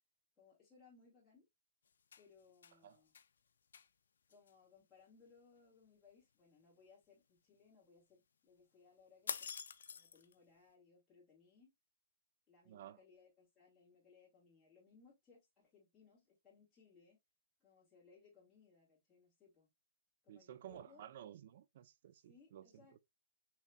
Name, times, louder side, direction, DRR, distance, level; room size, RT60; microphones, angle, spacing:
voice 1, 0.4-1.5 2.2-3.1 4.3-9.5 9.9-11.7 12.5-17.2 17.6-19.7 20.2-21.1 22.1-23.0, left 5 dB, 10° left, 2.4 m, -66 dB
sound 1, 1.9-2.8 3.1-3.3 3.7-3.9 4.3-4.5 9.3-10.4, left 7 dB, 80° left, 0.4 m, -46 dB
voice 2, 12.7-13.0 20.3-22.9, right 11 dB, 55° right, 0.4 m, -54 dB
5.5 x 3.2 x 2.2 m
hypercardioid pair, 155°, 0 cm